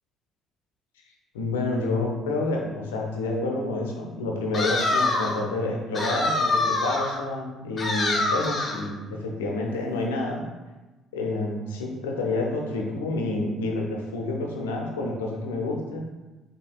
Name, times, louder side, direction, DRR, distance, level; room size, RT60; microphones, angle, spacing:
voice 1, 1.3-10.4 11.1-16.0, left 2 dB, 75° left, 0 dB, 0.7 m, -28 dB
sound 1, 4.5-5.4 5.9-7.2 7.8-8.9, left 2 dB, 35° left, 1.0 m, -25 dB
5.7 x 3.6 x 2.3 m, 1.2 s
figure-of-eight pair, 50°, 0 cm